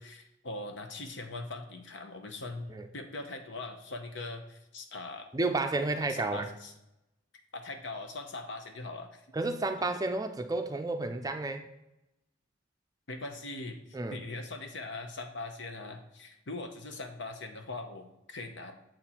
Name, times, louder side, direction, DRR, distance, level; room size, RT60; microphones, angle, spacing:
voice 1, 0.0-5.3 6.0-6.7 7.5-9.2 13.1-18.7, left 2 dB, 70° left, 6 dB, 0.9 m, -41 dB
voice 2, 5.3-6.5 9.3-11.6 13.9-14.2, right 2 dB, 20° right, 6 dB, 0.5 m, -31 dB
7.8 x 4.3 x 4.4 m, 0.88 s
head